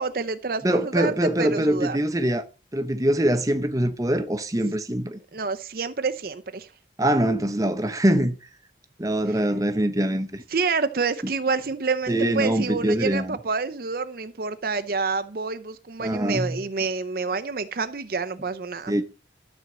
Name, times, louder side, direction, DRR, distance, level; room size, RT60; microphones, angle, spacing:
voice 1, 0.0-2.0 5.3-6.7 10.5-18.9, right 4 dB, 50° right, 0.6 m, -28 dB
voice 2, 0.6-2.5 2.7-5.2 7.0-8.4 9.0-10.4 11.2-11.3 12.1-13.4 16.0-16.6 18.9-19.0, right 1 dB, 20° right, 0.9 m, -23 dB
12.5 x 4.4 x 7.3 m
head